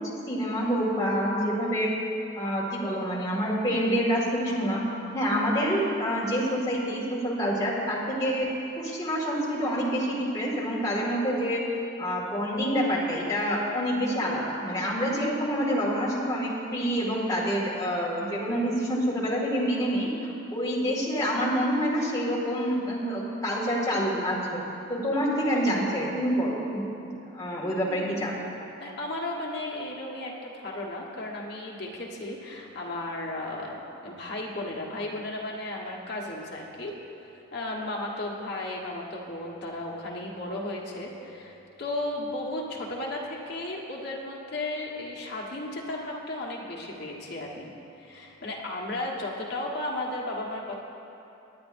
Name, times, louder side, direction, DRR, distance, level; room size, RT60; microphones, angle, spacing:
voice 1, 0.0-1.9 2.4-4.8 5.1-8.5 8.8-11.6 12.0-24.6 24.9-28.4, equal, 15° left, -6 dB, 1.9 m, -27 dB
voice 2, 28.8-36.9 37.5-47.7 48.0-50.8, left 1 dB, 50° left, -3 dB, 1.4 m, -34 dB
19.0 x 9.7 x 2.6 m, 2.9 s
head